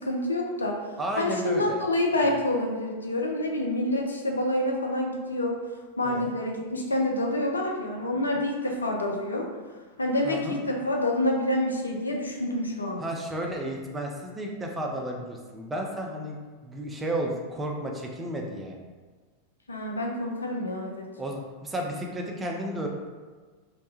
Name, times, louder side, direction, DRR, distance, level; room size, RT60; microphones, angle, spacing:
voice 1, 0.0-0.8 1.2-5.6 6.0-9.5 10.0-13.0 19.7-21.1, left 1 dB, 75° left, 0 dB, 0.3 m, -27 dB
voice 2, 1.0-1.8 2.2-2.3 6.0-6.3 10.2-10.6 13.0-16.4 16.6-18.7 21.2-22.9, right 1 dB, 10° right, 0 dB, 0.4 m, -32 dB
2.1 x 2.1 x 2.9 m, 1.4 s
figure-of-eight pair, 90°, 0 cm